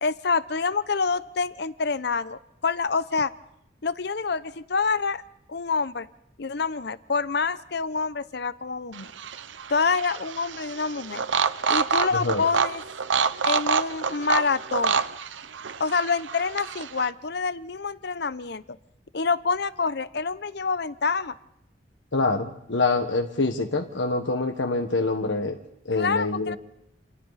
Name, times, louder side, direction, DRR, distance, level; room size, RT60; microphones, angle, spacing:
voice 1, 0.0-3.3 3.8-5.2 5.5-6.1 6.4-9.1 9.7-11.2 11.7-12.8 13.4-15.0 15.8-18.8 19.1-21.3 25.9-26.6, left 4 dB, 60° left, 15 dB, 0.8 m, -27 dB
sound 1, 8.9-17.1, right 6 dB, 85° right, 0.8 m, -27 dB
voice 2, 22.1-25.6 25.8-26.6, left 3 dB, 85° left, 4 dB, 1.5 m, -25 dB
28.0 x 28.0 x 4.2 m, 0.78 s
head